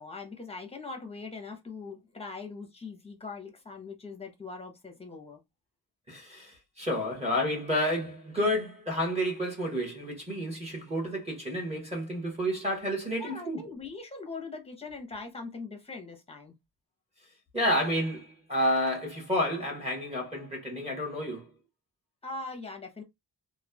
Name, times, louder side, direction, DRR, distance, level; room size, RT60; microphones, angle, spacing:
voice 1, 0.0-5.4 13.2-16.5 22.2-23.0, left 3 dB, 15° left, 0.8 m, -41 dB
voice 2, 6.1-13.7 17.5-21.5, equal, 15° right, 1.2 m, -30 dB
3.0 x 2.3 x 2.2 m
wide cardioid pair, 115°, 42 cm